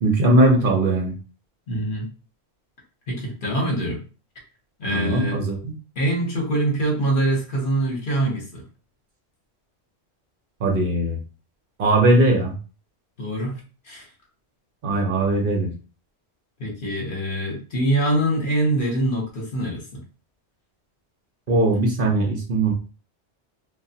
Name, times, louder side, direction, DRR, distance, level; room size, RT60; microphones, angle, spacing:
voice 1, 0.0-1.1 4.9-5.7 10.6-11.2 11.8-12.5 14.8-15.7 21.5-22.7, right 2 dB, 55° right, 1 dB, 0.8 m, -19 dB
voice 2, 1.7-2.1 3.1-4.0 4.8-5.4 6.0-8.6 13.2-13.6 13.9-14.1 16.6-20.0, right 1 dB, 50° left, -1 dB, 1.0 m, -24 dB
2.9 x 2.3 x 2.7 m, 0.35 s
omnidirectional pair, 1.1 m